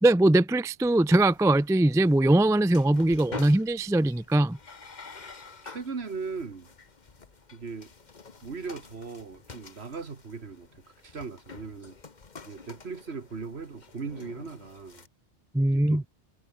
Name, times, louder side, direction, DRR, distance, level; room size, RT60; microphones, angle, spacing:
voice 1, 0.0-4.6 15.5-16.0, right 1 dB, 5° right, 0.3 m, -21 dB
sound 1, 0.8-15.1, left 4 dB, 40° left, 1.4 m, -48 dB
voice 2, 5.6-6.7 7.5-7.9 8.4-12.0 12.5-15.1 15.7-16.1, right 4 dB, 65° right, 2.0 m, -38 dB
omnidirectional pair, 1.2 m